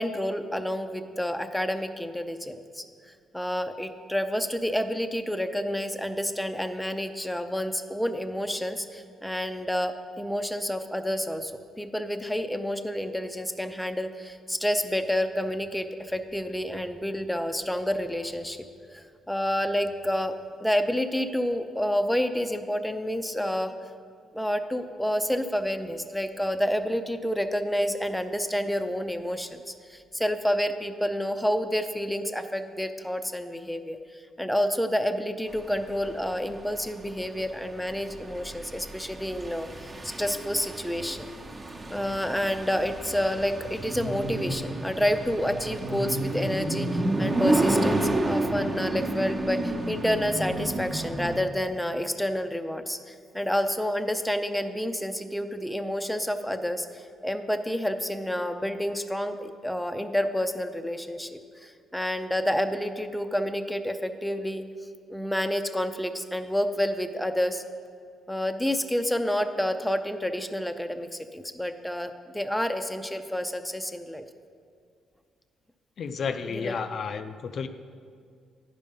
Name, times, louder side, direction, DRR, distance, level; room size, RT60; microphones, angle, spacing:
voice 1, 0.0-2.8 3.3-11.5 11.8-18.6 18.9-20.3 20.6-23.7 24.3-29.6 29.9-34.0 34.4-41.3 41.9-64.6 65.1-67.6 68.3-74.2 76.6-76.7, equal, 5° left, 7 dB, 0.5 m, -29 dB
sound 1, 35.6-51.4, right 2 dB, 30° right, 0.9 m, -30 dB
voice 2, 76.0-77.7, left 6 dB, 55° left, 9 dB, 0.4 m, -32 dB
10.0 x 5.2 x 5.4 m, 2.2 s
cardioid pair, 90°, 0 cm